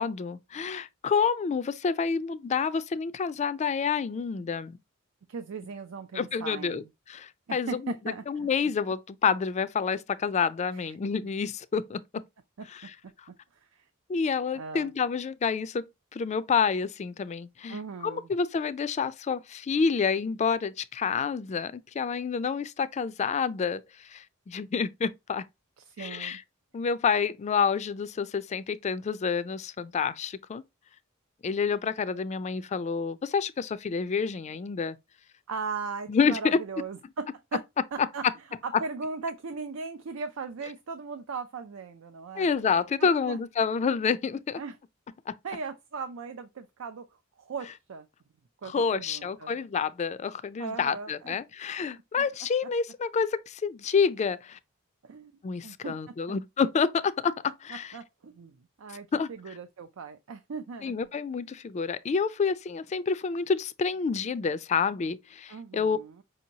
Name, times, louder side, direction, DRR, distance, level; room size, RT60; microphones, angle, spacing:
voice 1, 0.0-4.8 6.1-6.8 7.1-7.9 8.3-12.2 12.7-12.9 13.2-13.3 14.1-25.4 26.0-26.4 26.7-30.6 31.4-35.0 36.1-36.6 38.0-38.1 42.3-44.6 45.3-45.4 48.6-54.6 55.4-57.9 59.1-59.3 60.8-66.0, left 5 dB, 35° left, 0.3 m, -28 dB
voice 2, 5.3-6.9 7.5-8.5 10.7-10.9 11.2-11.3 13.7-13.8 14.5-14.9 17.7-18.3 25.8-26.4 35.5-37.6 37.9-38.2 38.6-42.5 43.0-43.4 44.6-44.8 45.4-47.1 47.4-48.1 48.6-49.5 50.6-51.4 55.0-56.4 57.9-60.9 65.5-66.2, right 4 dB, 85° right, 0.5 m, -38 dB
5.2 x 2.8 x 2.7 m
head